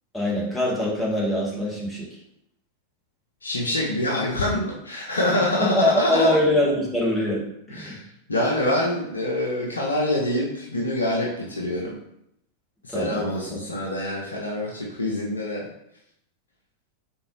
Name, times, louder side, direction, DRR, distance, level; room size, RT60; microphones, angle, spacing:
voice 1, 0.1-2.1 5.6-7.4 7.7-8.0 12.9-13.6, left 1 dB, 5° left, -6 dB, 1.2 m, -23 dB
voice 2, 3.4-6.4 7.7-8.0 8.3-11.9 12.8-15.6, left 1 dB, 75° left, -3 dB, 0.5 m, -25 dB
3.8 x 2.7 x 3.0 m, 0.78 s
figure-of-eight pair, 90°, 0 cm